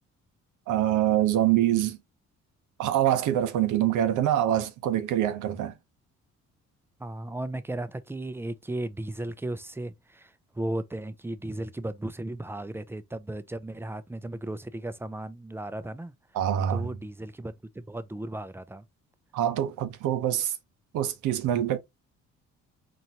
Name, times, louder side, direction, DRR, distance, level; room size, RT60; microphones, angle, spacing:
voice 1, 0.7-2.0 2.8-5.7 16.3-16.9 19.3-20.6 20.9-21.8, right 11 dB, 85° right, 0.8 m, -25 dB
voice 2, 7.0-16.1 16.7-18.8, right 1 dB, 10° right, 0.4 m, -35 dB
4.3 x 2.6 x 2.8 m
cardioid pair, 90°, 30 cm